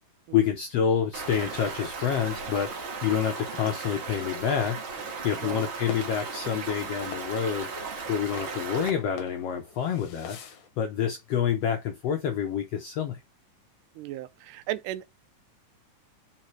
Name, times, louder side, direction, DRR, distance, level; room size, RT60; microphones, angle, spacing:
voice 1, 0.3-7.7 8.1-13.2, left 8 dB, 80° left, 1.4 m, -28 dB
Stream, 1.1-8.9, right 4 dB, 45° right, 2.1 m, -36 dB
sound 1, 4.8-10.7, left 6 dB, 60° left, 1.8 m, -46 dB
voice 2, 14.0-15.1, right 14 dB, 80° right, 2.0 m, -35 dB
4.9 x 4.3 x 4.5 m
omnidirectional pair, 3.7 m